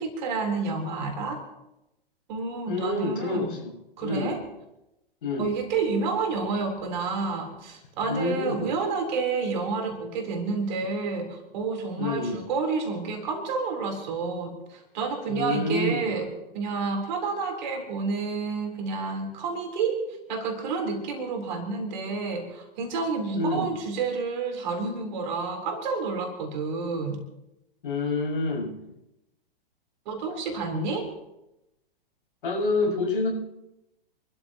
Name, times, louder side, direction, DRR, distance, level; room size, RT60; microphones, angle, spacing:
voice 1, 0.0-1.4 2.3-3.5 4.0-4.4 5.4-20.0 20.3-27.2 30.1-31.1, right 4 dB, 50° right, 3 dB, 3.8 m, -29 dB
voice 2, 2.7-3.7 4.0-4.4 5.2-5.5 8.0-8.7 12.0-12.4 15.3-16.1 23.3-23.8 27.8-28.8 32.4-33.3, left 2 dB, 60° left, -2 dB, 6.3 m, -27 dB
28.0 x 13.0 x 3.0 m, 0.91 s
figure-of-eight pair, 105°, 30 cm